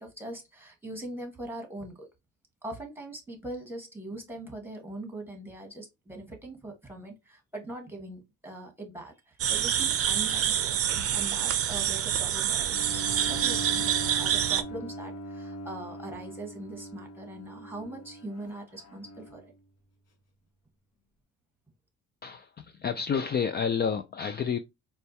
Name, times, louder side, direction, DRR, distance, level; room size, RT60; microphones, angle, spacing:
voice 1, 0.0-2.1 2.6-19.5, right 1 dB, 5° right, 1.4 m, -41 dB
sound 1, 9.4-14.6, right 10 dB, 50° right, 0.5 m, -27 dB
Bowed string instrument, 12.6-19.6, right 1 dB, 55° left, 1.2 m, -40 dB
voice 2, 22.2-24.6, left 6 dB, 35° left, 0.4 m, -29 dB
4.3 x 2.3 x 2.7 m
cardioid pair, 90°, 30 cm